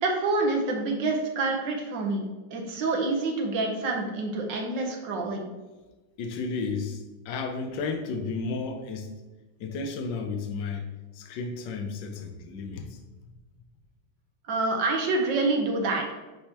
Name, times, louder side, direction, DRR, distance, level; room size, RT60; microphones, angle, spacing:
voice 1, 0.0-2.2 2.5-5.4 14.5-16.1, right 3 dB, 80° right, 1 dB, 1.7 m, -27 dB
voice 2, 6.2-9.1 9.6-10.9 11.1-13.0, left 4 dB, 75° left, 5 dB, 1.3 m, -33 dB
9.6 x 3.5 x 3.0 m, 1.2 s
omnidirectional pair, 2.0 m